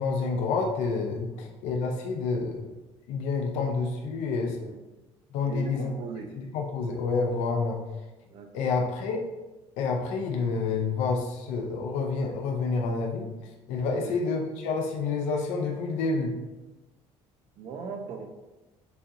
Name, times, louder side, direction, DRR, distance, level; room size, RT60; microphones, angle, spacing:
voice 1, 0.0-2.7 3.1-4.6 5.3-5.9 6.4-7.8 8.5-9.2 9.8-13.3 13.7-16.3, left 4 dB, 85° left, 1 dB, 0.6 m, -28 dB
voice 2, 5.5-6.3 8.3-8.6 13.9-14.2 17.6-18.3, right 5 dB, 55° right, 5 dB, 0.6 m, -39 dB
6.9 x 2.8 x 2.6 m, 1.1 s
cardioid pair, 160°, 12 cm